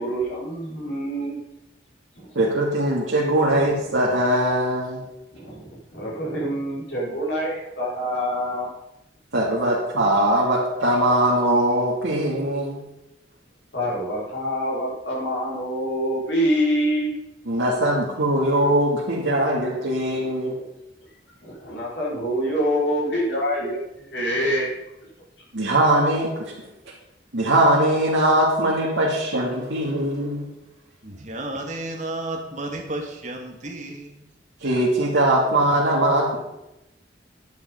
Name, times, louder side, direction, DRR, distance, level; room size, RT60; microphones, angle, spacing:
voice 1, 0.0-1.4 2.1-2.4 5.3-8.7 13.7-17.1 17.5-17.6 20.4-20.6 21.4-24.7, equal, 70° left, -5 dB, 4.7 m, -26 dB
voice 2, 2.3-5.0 9.3-12.8 17.5-20.5 25.5-26.5 27.3-30.4 34.6-36.4, right 1 dB, 85° right, -6 dB, 2.4 m, -21 dB
voice 3, 31.0-34.1, right 1 dB, 40° right, 2 dB, 1.9 m, -32 dB
10.5 x 8.0 x 5.4 m, 0.92 s
head